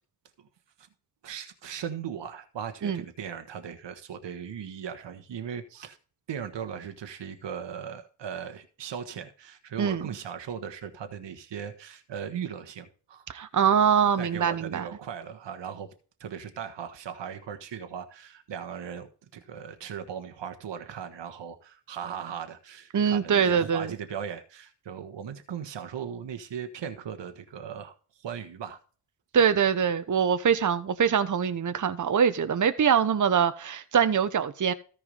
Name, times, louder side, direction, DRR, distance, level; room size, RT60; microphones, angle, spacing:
voice 1, 1.2-6.0 6.3-13.2 14.2-15.9 16.2-28.8, right 8 dB, 60° right, 1.4 m, -38 dB
voice 2, 13.3-14.8 22.9-23.9 29.3-34.7, right 7 dB, 40° right, 1.0 m, -23 dB
14.0 x 4.7 x 5.5 m
supercardioid pair, 45°, 49 cm